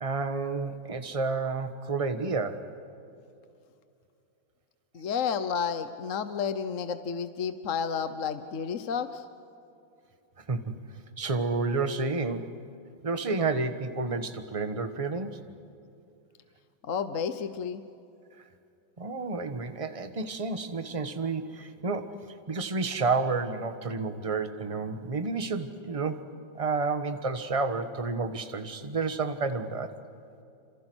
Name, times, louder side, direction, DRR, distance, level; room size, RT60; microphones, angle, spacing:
voice 1, 0.0-2.6 10.5-10.8 11.2-12.5 13.0-15.4 19.0-26.3 26.5-29.9, right 4 dB, 20° right, 8 dB, 1.2 m, -30 dB
voice 2, 4.9-9.3 16.8-17.8, left 6 dB, 50° left, 10 dB, 1.1 m, -31 dB
28.5 x 27.0 x 6.3 m, 2.6 s
omnidirectional pair, 2.1 m